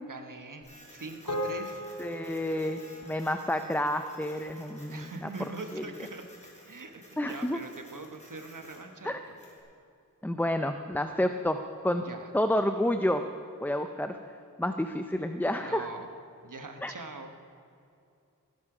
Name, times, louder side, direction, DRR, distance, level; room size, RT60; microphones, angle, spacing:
voice 1, 0.0-1.8 4.9-6.2 6.7-9.4 11.9-12.3 15.6-16.1 16.4-17.3, right 3 dB, 65° right, 5 dB, 1.2 m, -42 dB
Printer, 0.6-9.6, left 1 dB, 20° left, 4.2 m, -55 dB
sound 1, 1.3-5.8, equal, 75° left, 2.0 m, -40 dB
voice 2, 2.0-5.3 5.7-5.8 7.2-7.6 9.0-9.2 10.2-12.0 12.3-13.2 13.6-14.2 14.6-15.9 16.8-16.9, left 1 dB, 5° left, 7 dB, 0.5 m, -29 dB
17.5 x 11.0 x 4.9 m, 2.6 s
wide cardioid pair, 55°, 33 cm